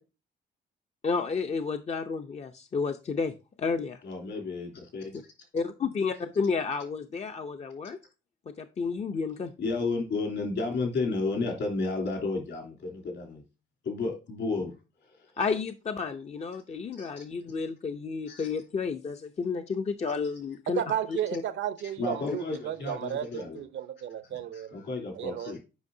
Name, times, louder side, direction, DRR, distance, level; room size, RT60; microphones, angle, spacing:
voice 1, 1.0-4.0 5.5-8.0 8.5-9.5 15.4-20.8 21.1-21.4 22.2-22.4, left 5 dB, 35° left, 0.5 m, -31 dB
voice 2, 4.0-5.2 9.6-13.4 13.8-14.7 15.0-15.3 17.0-17.2 18.3-18.5 22.0-23.6 24.3-25.6, left 3 dB, 65° left, 3.0 m, -32 dB
voice 3, 20.7-24.7 25.1-25.6, right 10 dB, 70° right, 0.7 m, -33 dB
8.1 x 5.4 x 2.7 m
cardioid pair, 90°, 20 cm